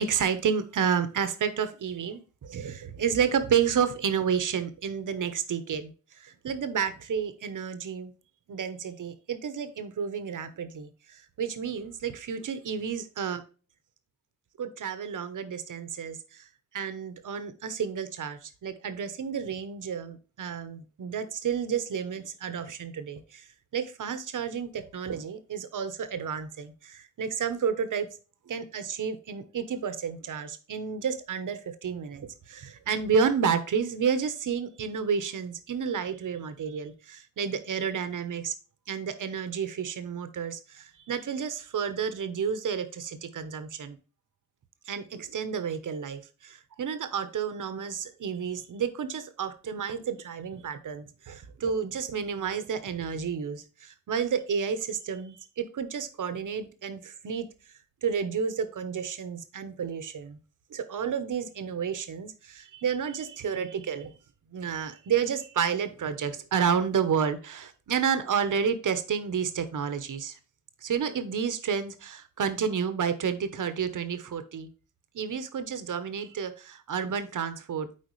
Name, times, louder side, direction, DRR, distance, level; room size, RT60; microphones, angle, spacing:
voice 1, 0.0-8.1 8.5-13.4 14.6-16.5 16.7-23.5 23.7-28.1 28.5-38.5 38.9-44.0 44.9-57.5 58.0-60.4 60.7-64.1 64.5-70.4 70.8-74.7 75.1-77.9, right 7 dB, 80° right, 11 dB, 1.0 m, -31 dB
8.5 x 4.5 x 3.1 m, 0.36 s
cardioid pair, 75°, 31 cm